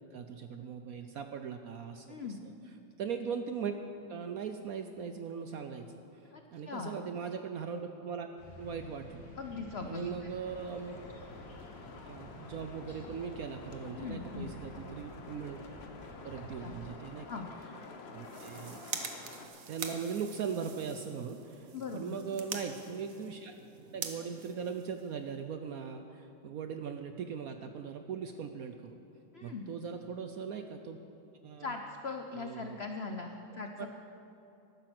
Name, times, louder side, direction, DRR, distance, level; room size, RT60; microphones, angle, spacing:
voice 1, 0.1-2.1 2.4-2.5 3.0-3.7 4.1-5.9 6.5-8.3 8.6-9.3 9.8-11.0 12.0-15.6 16.2-17.4 18.1-18.8 19.7-23.5 23.9-29.0 29.4-31.0 31.4-31.7 32.4-32.8, right 6 dB, 70° right, 7 dB, 0.9 m, -39 dB
voice 2, 2.1-2.4 6.2-6.9 9.4-10.3 13.9-14.5 16.6-16.8 17.2-17.5 21.7-22.2 29.3-29.7 31.6-33.9, left 4 dB, 70° left, 4 dB, 0.6 m, -40 dB
sound 1, 8.4-16.9, left 1 dB, 85° left, 4.0 m, -51 dB
sound 2, 10.4-19.5, left 4 dB, 45° left, 0.9 m, -50 dB
sound 3, 18.1-25.4, right 6 dB, 55° right, 1.2 m, -45 dB
13.5 x 11.5 x 6.0 m, 2.9 s
omnidirectional pair, 2.0 m